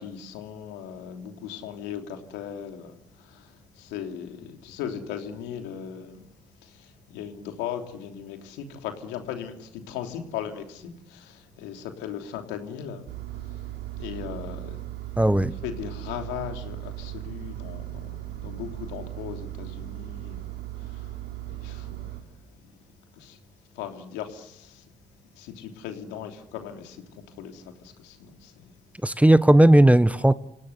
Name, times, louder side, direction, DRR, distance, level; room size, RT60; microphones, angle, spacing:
voice 1, 0.0-6.3 6.6-13.1 13.4-13.6 14.0-14.8 15.6-21.2 21.5-22.4 23.1-23.4 23.7-24.9 25.4-28.7 29.1-29.2, left 9 dB, 85° left, 3.2 m, -38 dB
Engine, 13.1-22.2, right 15 dB, 70° right, 3.8 m, -37 dB
voice 2, 15.2-15.5 29.0-30.3, right 1 dB, 10° right, 1.3 m, -16 dB
27.5 x 18.0 x 8.2 m
hypercardioid pair, 50°, 17 cm